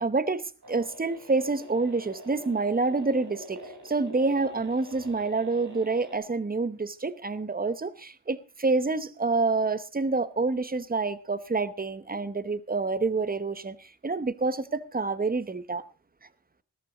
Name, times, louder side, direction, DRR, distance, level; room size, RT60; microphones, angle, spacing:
voice 1, 0.0-15.8, right 3 dB, 20° right, 0.9 m, -28 dB
sound 1, 0.6-6.1, equal, 50° right, 5.1 m, -45 dB
15.5 x 13.5 x 3.9 m
wide cardioid pair, 100°, 40 cm